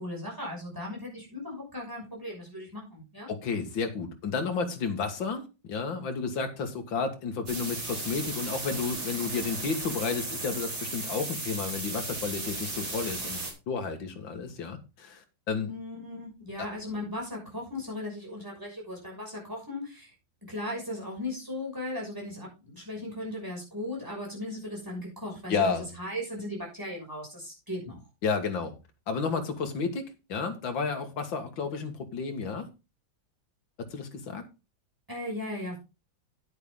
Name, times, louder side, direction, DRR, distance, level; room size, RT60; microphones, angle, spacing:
voice 1, 0.0-3.3 15.6-20.1 20.5-28.0 35.1-35.8, left 1 dB, 10° right, -2 dB, 6.2 m, -37 dB
voice 2, 3.3-13.4 13.7-15.7 16.6-16.7 25.5-25.9 28.2-28.7 29.1-32.7 33.9-34.4, left 5 dB, 85° left, 6 dB, 2.3 m, -31 dB
sound 1, 7.5-13.5, right 2 dB, 80° right, 5.0 m, -35 dB
10.0 x 9.1 x 3.7 m, 0.28 s
omnidirectional pair, 2.1 m